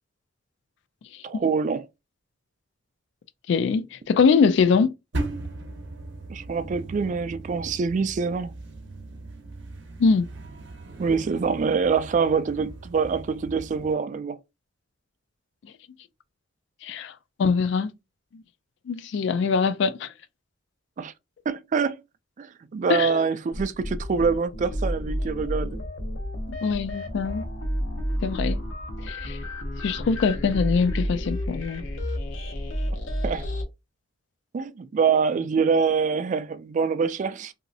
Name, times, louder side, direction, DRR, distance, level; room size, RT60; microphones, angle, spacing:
voice 1, 1.2-1.9 6.3-8.6 11.0-14.4 21.0-21.1 21.5-22.0 22.4-22.5 22.7-25.8 33.2-33.4 34.5-37.5, right 5 dB, 40° right, 0.3 m, -25 dB
voice 2, 3.5-4.9 10.0-10.3 16.8-17.1 17.4-17.9 18.3-18.4 18.9-20.1 22.9-23.2 26.5-27.4 28.2-28.6 29.0-29.4 29.8-31.9, left 5 dB, 65° left, 0.3 m, -23 dB
sound 1, 5.1-13.9, right 2 dB, 65° right, 0.7 m, -38 dB
sound 2, 23.5-33.6, equal, 80° left, 0.7 m, -31 dB
3.0 x 2.7 x 2.6 m
head